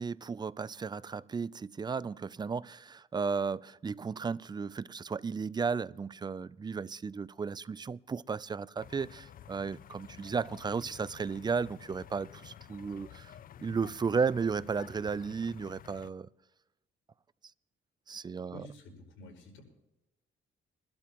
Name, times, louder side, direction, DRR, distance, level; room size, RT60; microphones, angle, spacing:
voice 1, 0.0-16.3 18.1-18.7, right 5 dB, 20° right, 0.4 m, -34 dB
sound 1, 8.8-16.1, left 10 dB, 45° left, 0.4 m, -52 dB
voice 2, 18.5-19.6, left 1 dB, 75° left, 5.1 m, -49 dB
24.0 x 12.0 x 3.0 m
cardioid pair, 90°, 20 cm